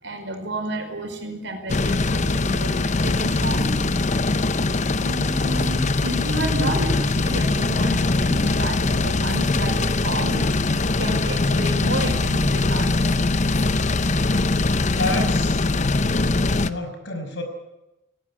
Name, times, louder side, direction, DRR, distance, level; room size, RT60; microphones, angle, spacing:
voice 1, 0.0-3.9 5.0-10.4 11.0-13.4, right 1 dB, 60° right, 5 dB, 4.9 m, -31 dB
sound 1, 1.7-16.7, left 2 dB, 35° left, 0.8 m, -22 dB
voice 2, 14.9-15.6 16.6-17.4, left 2 dB, 60° left, 5 dB, 5.6 m, -29 dB
19.5 x 17.5 x 9.9 m, 0.96 s
head